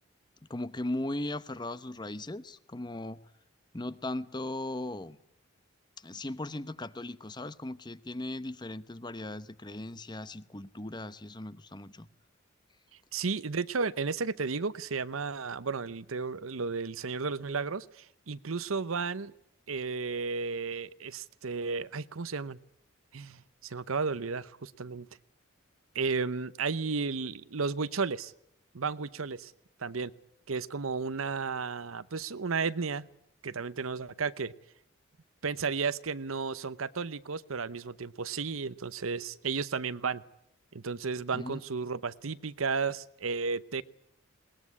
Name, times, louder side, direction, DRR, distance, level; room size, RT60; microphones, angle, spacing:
voice 1, 0.5-3.2 3.7-5.2 6.0-12.1 41.3-41.6, left 1 dB, 20° left, 15 dB, 0.8 m, -38 dB
voice 2, 13.1-19.3 19.7-22.6 23.1-25.1 25.9-28.3 28.7-29.5 29.8-30.1 30.5-33.1 33.4-34.5 35.4-40.2 40.7-43.8, right 4 dB, 85° right, 16 dB, 0.9 m, -33 dB
21.5 x 20.0 x 9.7 m, 0.75 s
head